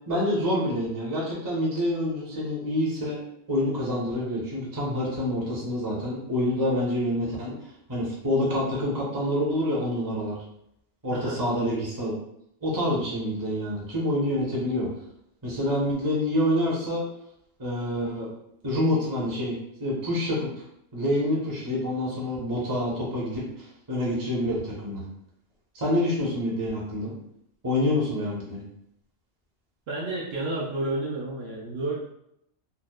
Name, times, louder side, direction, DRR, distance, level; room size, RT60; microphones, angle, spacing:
voice 1, 0.1-3.2 3.5-7.5 7.9-10.4 11.0-12.1 12.6-14.9 15.4-17.0 17.6-18.3 18.6-19.5 19.8-20.5 20.9-23.4 23.9-25.0 25.7-27.1 27.6-28.6, left 1 dB, 25° right, -5 dB, 0.5 m, -27 dB
voice 2, 29.9-32.1, right 2 dB, 65° right, -5 dB, 0.7 m, -31 dB
2.8 x 2.0 x 2.2 m, 0.76 s
omnidirectional pair, 1.3 m